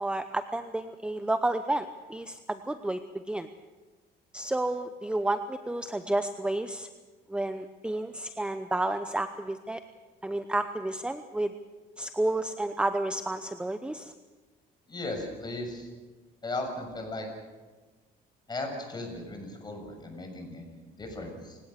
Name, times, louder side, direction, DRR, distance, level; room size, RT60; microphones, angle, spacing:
voice 1, 0.0-3.0 3.3-3.5 4.3-6.9 7.3-9.8 10.2-11.5 12.0-14.1, right 2 dB, 5° right, 10 dB, 0.8 m, -31 dB
voice 2, 14.9-15.9 16.4-17.3 18.5-21.6, left 2 dB, 25° left, 3 dB, 6.8 m, -37 dB
28.0 x 17.0 x 6.7 m, 1.3 s
cardioid pair, 110°, 17 cm